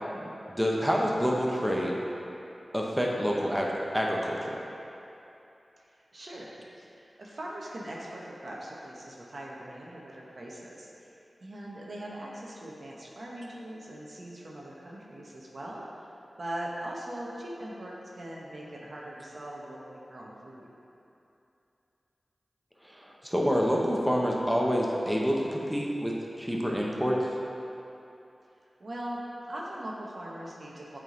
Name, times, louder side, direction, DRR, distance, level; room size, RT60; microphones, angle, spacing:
voice 1, 0.6-1.9 2.7-4.6 22.8-27.2, equal, 5° right, -2 dB, 0.8 m, -27 dB
voice 2, 5.8-11.1 11.4-16.1 16.4-20.7 28.8-29.2 29.5-31.0, right 1 dB, 65° right, -4 dB, 1.0 m, -41 dB
8.1 x 3.6 x 3.8 m, 2.8 s
cardioid pair, 45°, 0 cm